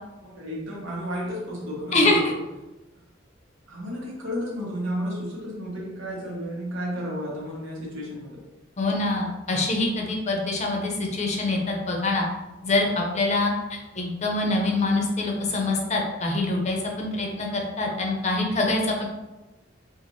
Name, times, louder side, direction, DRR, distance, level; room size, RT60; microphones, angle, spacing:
voice 1, 0.2-2.4 3.7-8.4, equal, 80° right, -3 dB, 1.2 m, -32 dB
voice 2, 1.9-2.3 8.8-12.2 12.6-13.5 14.0-19.1, left 2 dB, 35° left, 1 dB, 0.6 m, -25 dB
3.9 x 2.5 x 3.0 m, 1.0 s
head